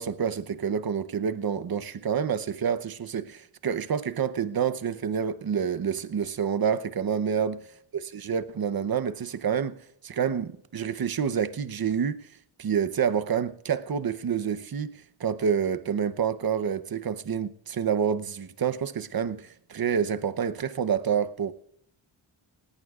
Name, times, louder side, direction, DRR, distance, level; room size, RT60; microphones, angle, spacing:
voice 1, 0.0-7.6 7.9-9.8 10.0-12.3 12.6-21.5, right 7 dB, 45° right, 0.9 m, -28 dB
18.5 x 17.5 x 2.4 m
wide cardioid pair, 90°, 49 cm